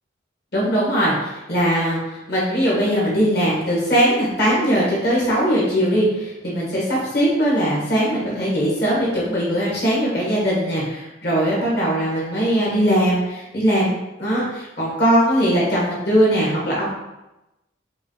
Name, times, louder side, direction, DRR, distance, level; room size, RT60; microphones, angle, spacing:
voice 1, 0.5-13.9 14.2-16.9, equal, 55° left, -5 dB, 1.5 m, -20 dB
5.4 x 2.4 x 3.0 m, 0.94 s
head